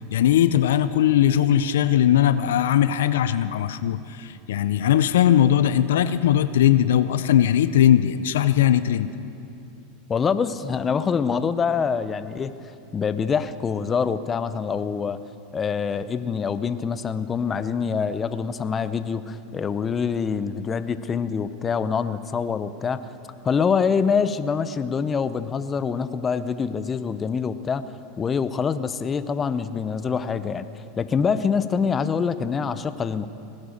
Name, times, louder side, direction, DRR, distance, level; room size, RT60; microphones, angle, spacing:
voice 1, 0.1-9.1, left 11 dB, 80° left, 13 dB, 0.5 m, -19 dB
voice 2, 10.1-12.5 12.9-15.2 15.5-23.0 23.4-27.8 28.2-30.7 31.0-33.3, left 6 dB, 25° left, 13 dB, 0.6 m, -25 dB
18.5 x 11.0 x 6.5 m, 2.6 s
hypercardioid pair, 105°, 0 cm